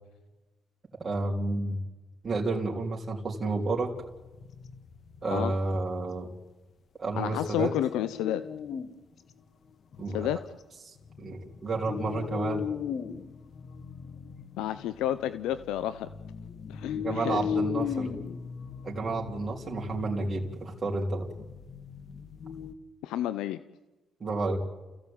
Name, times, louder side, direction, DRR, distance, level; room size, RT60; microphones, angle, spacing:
voice 1, 1.0-1.8 2.2-3.9 5.2-6.3 7.0-7.7 10.0-10.3 10.9-12.6 17.0-18.1 18.8-21.3 24.2-24.6, right 3 dB, 40° right, -2 dB, 3.6 m, -31 dB
sound 1, 4.0-5.8 7.5-9.0 9.3-9.4 9.9-10.4 11.0-22.7, left 7 dB, 60° left, 1.7 m, -37 dB
voice 2, 7.2-8.4 10.1-10.4 14.6-16.1 16.7-17.4 23.0-23.6, left 12 dB, 90° left, 13 dB, 0.7 m, -30 dB
30.0 x 16.0 x 8.9 m, 1.2 s
supercardioid pair, 65°, 0 cm